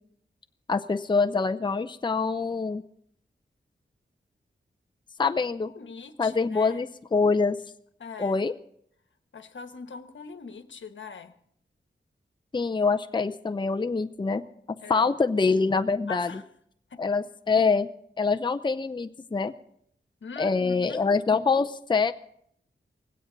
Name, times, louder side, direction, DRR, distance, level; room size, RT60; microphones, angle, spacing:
voice 1, 0.7-2.8 5.2-5.7 6.2-7.6 8.2-8.5 12.5-14.4 14.9-16.3 17.0-17.9 18.2-19.5 20.4-22.1, left 4 dB, 25° left, 7 dB, 0.6 m, -25 dB
voice 2, 5.7-6.8 8.0-8.4 9.3-11.3 14.8-15.1 16.1-16.4 16.9-17.0 20.2-21.1, left 5 dB, 80° left, 9 dB, 1.2 m, -41 dB
18.5 x 16.0 x 4.0 m, 0.69 s
wide cardioid pair, 105°, 20 cm